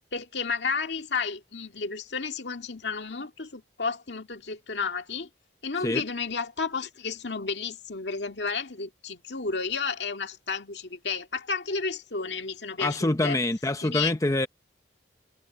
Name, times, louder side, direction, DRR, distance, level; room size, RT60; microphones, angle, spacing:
voice 1, 0.1-5.3 5.6-13.4 13.8-14.1, left 5 dB, 75° left, 2.0 m, -32 dB
voice 2, 12.8-14.5, left 1 dB, 20° left, 0.6 m, -25 dB
head